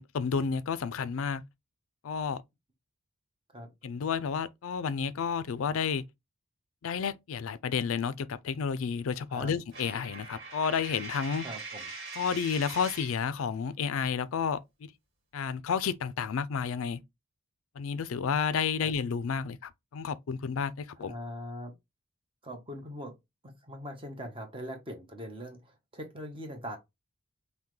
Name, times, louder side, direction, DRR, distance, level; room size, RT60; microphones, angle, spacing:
voice 1, 0.0-1.4 2.0-2.4 3.8-6.0 6.8-11.5 12.1-14.9 15.3-17.0 17.8-21.1, left 6 dB, 70° left, 0.4 m, -31 dB
Coin (dropping), 9.7-13.2, right 4 dB, 50° right, 1.5 m, -42 dB
voice 2, 11.4-11.9 18.8-18.9 21.0-21.7 22.4-23.1 23.4-26.8, equal, 25° right, 1.0 m, -41 dB
5.6 x 2.2 x 3.1 m
head